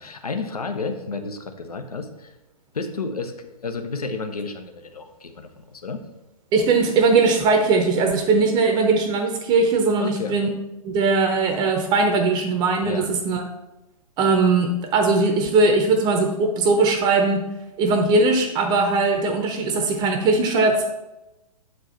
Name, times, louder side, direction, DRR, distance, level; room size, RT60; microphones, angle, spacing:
voice 1, 0.0-2.3 2.7-6.0 10.0-10.4 12.8-13.1, left 4 dB, 75° left, 7 dB, 0.8 m, -31 dB
voice 2, 6.5-10.5 10.8-13.4 14.2-17.4 17.8-20.8, right 3 dB, 20° right, 5 dB, 0.6 m, -20 dB
7.9 x 4.5 x 4.2 m, 0.97 s
figure-of-eight pair, 120°, 19 cm